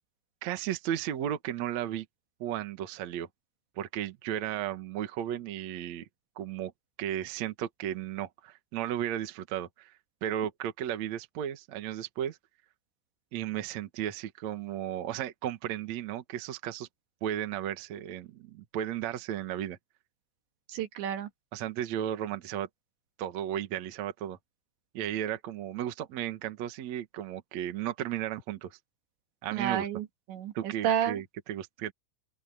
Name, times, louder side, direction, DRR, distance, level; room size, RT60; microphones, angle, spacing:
voice 1, 0.4-2.1 2.4-3.3 3.8-6.1 6.4-6.7 7.0-12.4 13.3-16.9 17.2-19.8 21.5-22.7 23.2-24.4 24.9-28.8 29.4-29.9 30.5-31.9, right 11 dB, 60° right, 1.9 m, -34 dB
voice 2, 20.7-21.3 29.5-31.2, right 9 dB, 80° right, 4.4 m, -31 dB
open air
omnidirectional pair, 5.1 m